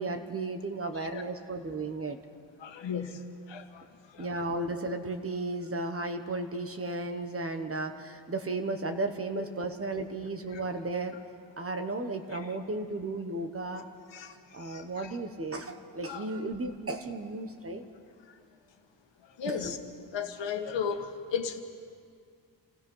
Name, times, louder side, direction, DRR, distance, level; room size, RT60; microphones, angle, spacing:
voice 1, 0.0-2.2 4.2-11.2 11.6-13.8 14.2-14.3 14.5-17.8 19.5-19.6, right 2 dB, 30° right, 6 dB, 1.2 m, -34 dB
voice 2, 2.6-4.3 9.3-9.4 10.5-10.6 12.3-12.5 14.1-15.2 16.0-16.3 18.3-18.4 19.2-19.8 20.1-21.6, left 6 dB, 75° left, 6 dB, 1.6 m, -36 dB
28.5 x 16.5 x 5.6 m, 2.2 s
wide cardioid pair, 110°, 44 cm